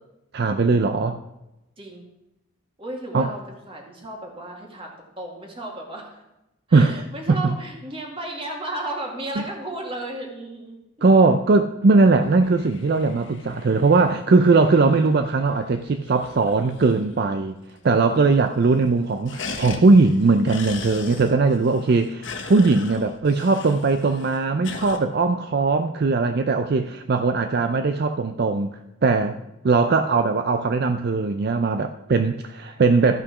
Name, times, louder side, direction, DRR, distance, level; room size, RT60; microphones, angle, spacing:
voice 1, 0.3-1.2 3.1-3.3 6.7-7.5 11.0-17.6 17.8-28.7 29.0-29.4 29.6-33.2, right 3 dB, 55° right, 8 dB, 0.4 m, -19 dB
voice 2, 1.8-2.1 2.8-6.2 6.7-10.8 17.7-17.9 26.8-27.2 29.1-29.4, right 1 dB, 30° right, 0 dB, 2.2 m, -35 dB
sound 1, 12.1-17.4 17.7-17.8 18.0-18.5 18.8-25.0, left 4 dB, 70° left, 1.3 m, -40 dB
13.5 x 5.9 x 6.0 m, 0.94 s
head